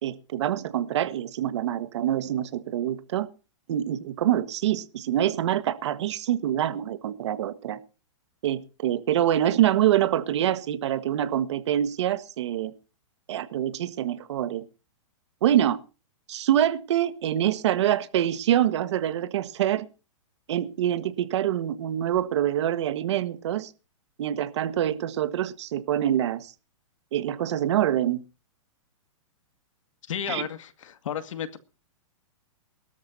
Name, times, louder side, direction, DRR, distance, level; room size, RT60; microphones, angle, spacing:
voice 1, 0.0-3.3 3.7-7.8 8.4-12.7 13.3-14.6 15.4-15.8 16.3-19.9 20.5-23.7 24.2-26.5 27.1-28.2 30.3-30.5, right 11 dB, 60° right, 1.6 m, -25 dB
voice 2, 30.1-31.6, left 9 dB, 70° left, 2.1 m, -33 dB
22.5 x 13.0 x 2.8 m
hypercardioid pair, 160°, 17 cm